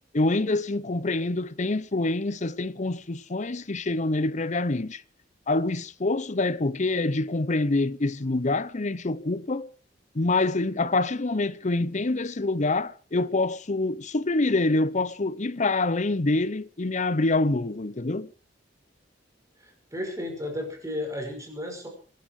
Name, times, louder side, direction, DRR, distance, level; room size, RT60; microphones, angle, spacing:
voice 1, 0.1-5.0 5.5-9.7 10.1-18.3, left 2 dB, 40° left, 0.8 m, -26 dB
voice 2, 19.6-21.9, left 1 dB, 20° right, 6.0 m, -34 dB
25.0 x 11.5 x 4.9 m
head